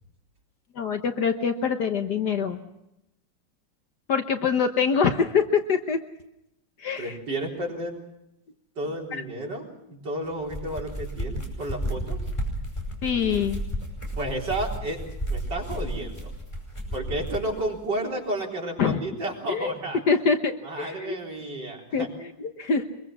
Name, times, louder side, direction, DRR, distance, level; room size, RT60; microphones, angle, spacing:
voice 1, 0.7-2.6 4.1-6.0 6.8-7.1 13.0-13.6 18.8-19.0 19.5-19.7 20.1-21.2 21.9-22.9, left 6 dB, 65° left, 7 dB, 1.7 m, -24 dB
voice 2, 7.0-8.0 8.8-12.2 14.2-15.0 15.3-16.3 16.9-20.2 20.6-22.1, right 1 dB, 65° right, -1 dB, 4.7 m, -32 dB
sound 1, 10.3-17.5, equal, 15° left, 5.2 m, -32 dB
24.5 x 22.0 x 6.2 m, 0.85 s
omnidirectional pair, 2.0 m